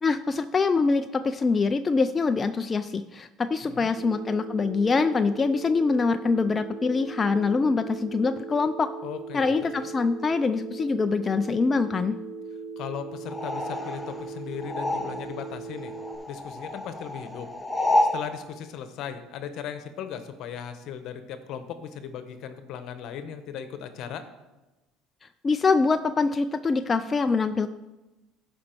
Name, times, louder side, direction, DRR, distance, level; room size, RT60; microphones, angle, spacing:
voice 1, 0.0-8.9 9.3-12.2 25.4-27.7, left 4 dB, 25° left, 9 dB, 0.4 m, -24 dB
Telephone, 4.0-16.2, right 4 dB, 70° right, 3.1 m, -39 dB
voice 2, 9.0-9.4 9.8-9.9 12.8-15.9 16.3-17.5 18.1-24.2, left 8 dB, 60° left, 9 dB, 1.0 m, -37 dB
sound 1, 13.3-15.5 15.8-18.3, left 1 dB, 10° left, 0.9 m, -29 dB
14.5 x 5.3 x 4.5 m, 1.1 s
supercardioid pair, 110°, 0 cm